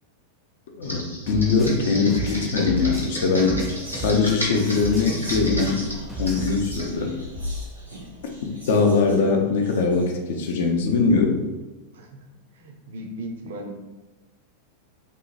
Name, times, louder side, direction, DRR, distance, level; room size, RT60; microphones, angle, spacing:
voice 1, 0.7-3.6 3.9-5.9 6.2-7.1 8.4-11.4, left 4 dB, 55° left, 3 dB, 0.4 m, -22 dB
Computer keyboard, 0.8-6.9, equal, 90° left, 0.6 m, -33 dB
sound 1, 1.3-4.5 4.8-6.6, equal, 5° left, 0.5 m, -32 dB
Whispering, 2.5-2.6 2.9-11.0, left 1 dB, 90° right, 0.9 m, -40 dB
voice 2, 11.9-12.2 12.5-13.7, right 1 dB, 60° right, 2 dB, 0.4 m, -37 dB
2.6 x 2.1 x 2.7 m, 1.1 s
figure-of-eight pair, 90°, 0 cm